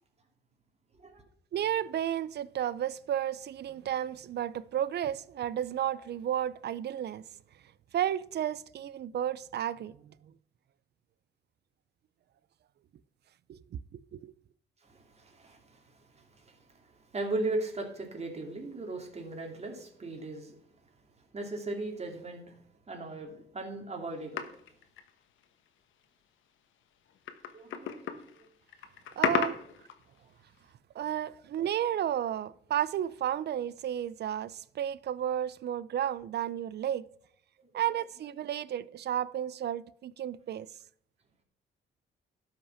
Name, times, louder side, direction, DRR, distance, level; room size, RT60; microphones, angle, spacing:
voice 1, 1.5-7.2 7.9-10.1 13.5-13.8 14.1-14.3 29.2-29.6 30.9-37.1 37.7-40.7, right 10 dB, 55° right, 0.6 m, -32 dB
voice 2, 14.8-20.6 21.3-22.6 22.9-24.5 27.5-28.1 28.3-28.4 37.6-37.7, right 2 dB, 35° right, 2.7 m, -38 dB
sound 1, 24.4-25.7 26.0-26.1 27.1-30.2 30.6-30.7, left 8 dB, 80° left, 1.2 m, -34 dB
12.5 x 6.0 x 5.6 m
cardioid pair, 90°, 20 cm